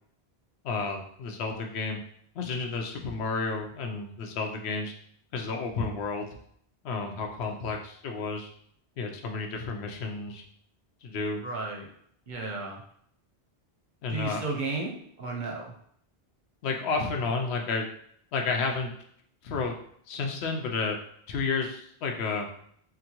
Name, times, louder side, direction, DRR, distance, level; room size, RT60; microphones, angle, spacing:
voice 1, 0.6-2.0 2.3-4.9 5.3-6.4 6.8-8.5 9.0-10.4 11.0-11.4 14.0-14.4 16.6-17.9 18.3-18.9 19.4-19.8 20.1-21.0 21.3-22.5, left 4 dB, 80° left, 3 dB, 0.8 m, -31 dB
voice 2, 11.4-11.9 12.3-12.8 14.1-14.9 15.2-15.7, right 3 dB, 55° right, 0 dB, 0.7 m, -33 dB
3.8 x 2.2 x 2.8 m, 0.65 s
omnidirectional pair, 1.1 m